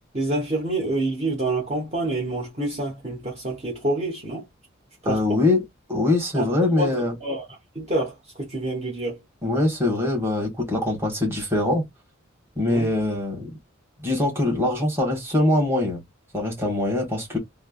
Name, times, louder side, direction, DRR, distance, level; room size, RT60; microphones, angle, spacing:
voice 1, 0.1-4.4 5.0-5.4 6.3-6.5 6.8-7.0 7.2-7.4 7.7-9.2 12.7-12.9, right 2 dB, 30° right, 1.0 m, -27 dB
voice 2, 5.0-5.6 5.9-7.1 9.4-11.8 12.6-13.5 14.0-16.0 16.3-17.4, left 2 dB, 10° right, 1.3 m, -23 dB
3.2 x 2.1 x 2.3 m
head